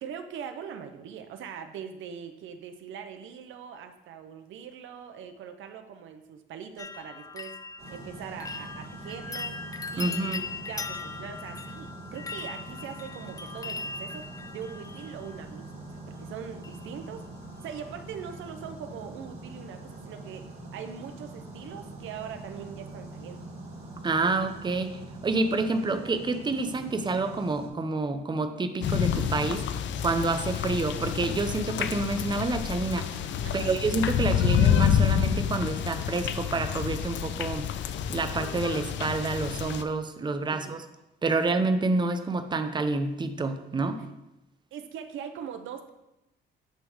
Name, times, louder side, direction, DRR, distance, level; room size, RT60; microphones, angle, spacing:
voice 1, 0.0-7.6 7.9-9.6 9.9-10.4 10.7-15.6 15.9-17.2 17.6-20.5 20.7-23.4 33.4-33.7 40.5-40.8 44.7-45.9, right 7 dB, 80° right, 8 dB, 0.7 m, -41 dB
sound 1, 6.8-15.7 16.6-17.2 17.4-18.0 18.3-18.4, left 4 dB, 20° left, 0.4 m, -40 dB
sound 2, 7.8-27.7, right 2 dB, 55° right, 2.7 m, -44 dB
voice 2, 10.0-10.4 24.0-29.7 30.0-33.1 33.5-37.7 38.1-40.8 41.2-44.0, right 3 dB, 20° right, 8 dB, 0.7 m, -28 dB
sound 3, 28.8-39.8, left 9 dB, 70° left, 0.5 m, -28 dB
8.9 x 3.4 x 4.9 m, 0.92 s
cardioid pair, 90°, 20 cm